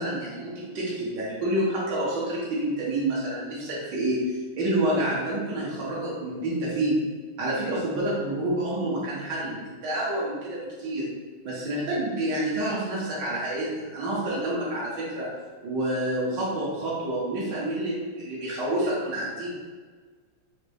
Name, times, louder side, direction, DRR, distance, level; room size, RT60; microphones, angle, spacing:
voice 1, 0.0-4.2 4.6-7.0 7.4-11.1 11.4-15.3 15.6-19.6, right 1 dB, 55° right, -6 dB, 1.1 m, -28 dB
4.9 x 2.1 x 3.5 m, 1.5 s
omnidirectional pair, 3.4 m